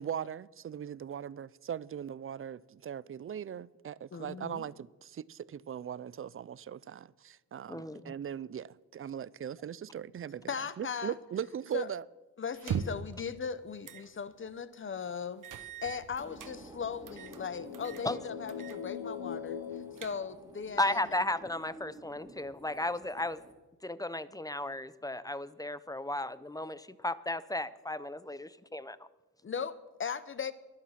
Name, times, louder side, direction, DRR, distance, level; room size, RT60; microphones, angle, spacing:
voice 1, 0.0-10.5 10.8-12.0, right 9 dB, 35° right, 0.4 m, -39 dB
voice 2, 4.1-4.7 10.5-11.1 11.7-11.9 12.4-21.0 29.4-30.5, left 6 dB, 35° left, 0.9 m, -38 dB
voice 3, 7.7-8.1 18.0-18.2 20.8-23.4 23.8-29.0, left 1 dB, 10° left, 0.6 m, -34 dB
sound 1, 12.5-13.1 13.8-14.1 14.5-14.6 15.4-16.5 17.1-17.4 17.7-18.1 18.5-18.8 19.1-19.2 19.7-20.5, right 7 dB, 55° right, 1.1 m, -39 dB
sound 2, 16.2-23.5, right 1 dB, 10° right, 2.2 m, -52 dB
sound 3, 17.1-21.0, left 7 dB, 70° left, 1.1 m, -42 dB
23.0 x 8.7 x 5.9 m
cardioid pair, 105°, 37 cm